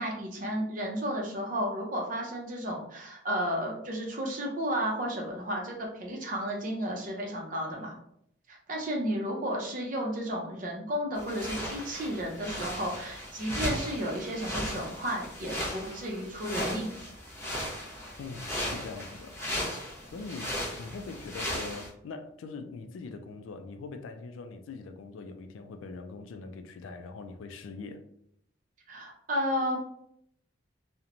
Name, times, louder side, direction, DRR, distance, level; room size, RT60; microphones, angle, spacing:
voice 1, 0.0-7.9 8.5-16.9 28.9-29.8, equal, 40° right, 0.5 m, -33 dB
sound 1, 11.1-21.9, left 1 dB, 15° left, 0.6 m, -36 dB
voice 2, 18.2-19.4 20.1-28.0, left 4 dB, 75° left, 0.3 m, -42 dB
2.9 x 2.1 x 2.5 m
head